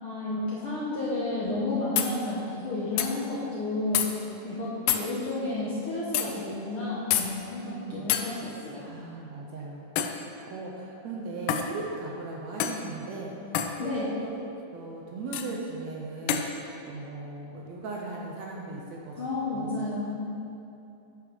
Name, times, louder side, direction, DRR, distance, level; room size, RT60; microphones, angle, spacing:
voice 1, 0.0-4.1 4.4-8.9 13.8-14.1 19.2-20.3, left 2 dB, 60° left, -8 dB, 1.4 m, -31 dB
sound 1, 1.5-1.6 2.0-2.1 3.0-3.1 3.9-4.1 4.9-5.1 6.1-6.3 7.1-7.3 8.1-8.3 10.0-10.2 11.5-11.7 12.6-12.8 13.5-13.7 15.3-15.5 16.3-16.5, left 10 dB, 85° left, 2.1 m, -26 dB
voice 2, 7.2-8.1 8.9-9.9 10.5-13.4 13.8-14.3 14.7-19.9, right 3 dB, 70° right, -2 dB, 1.8 m, -38 dB
8.4 x 6.3 x 5.1 m, 2.7 s
omnidirectional pair, 3.6 m